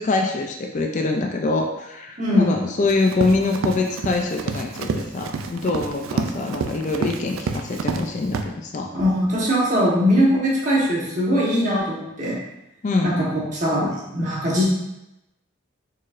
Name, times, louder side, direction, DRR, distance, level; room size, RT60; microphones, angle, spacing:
voice 1, 0.0-8.9 12.8-13.1, left 3 dB, 35° left, 2 dB, 0.3 m, -24 dB
voice 2, 2.2-2.5 8.9-12.4 13.0-14.6, equal, 35° right, -5 dB, 1.1 m, -21 dB
Run, 2.9-8.1 8.3-8.4, right 4 dB, 80° right, 0.4 m, -28 dB
4.2 x 4.1 x 2.5 m, 0.91 s
head